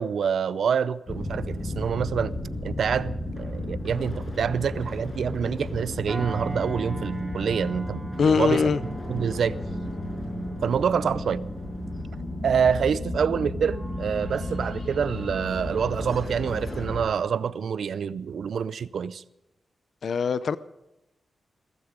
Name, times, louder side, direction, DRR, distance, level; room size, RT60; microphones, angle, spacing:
voice 1, 0.0-2.3 2.6-8.7 9.1-9.6 10.6-11.4 12.4-19.2, right 7 dB, 80° right, 0.5 m, -26 dB
sound 1, 1.1-17.0, left 1 dB, 50° left, 6.2 m, -33 dB
sound 2, 6.1-14.9 15.4-15.6, right 2 dB, 5° right, 3.2 m, -44 dB
voice 2, 8.2-8.8 20.0-20.6, left 5 dB, 70° left, 0.5 m, -22 dB
16.5 x 15.0 x 5.1 m
wide cardioid pair, 100°, 0 cm